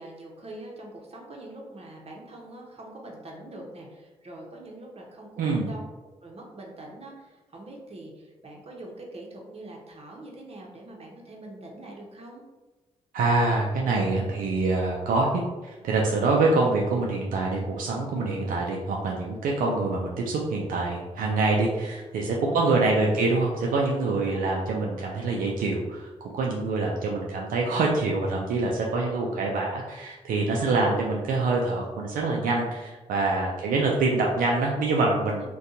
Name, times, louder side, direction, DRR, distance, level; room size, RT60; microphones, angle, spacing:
voice 1, 0.0-5.8 6.2-12.4 16.1-16.5 22.4-23.2 24.1-24.6 30.6-31.2 35.4-35.5, right 2 dB, 45° right, -1 dB, 0.9 m, -43 dB
voice 2, 5.4-5.7 13.1-35.5, right 3 dB, 80° right, -2 dB, 0.4 m, -25 dB
2.6 x 2.3 x 3.8 m, 1.2 s
supercardioid pair, 45°, 14 cm